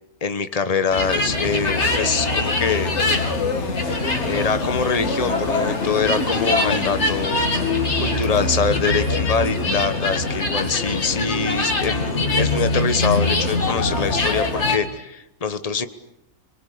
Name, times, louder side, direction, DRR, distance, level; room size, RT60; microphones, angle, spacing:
voice 1, 0.2-2.9 4.2-7.4 8.0-15.9, left 5 dB, 25° left, 10 dB, 1.3 m, -24 dB
sound 1, 0.9-14.8, left 2 dB, 50° left, 2.7 m, -23 dB
sound 2, 2.4-7.3, left 6 dB, 80° left, 1.9 m, -34 dB
27.0 x 23.0 x 8.5 m, 0.84 s
omnidirectional pair, 1.5 m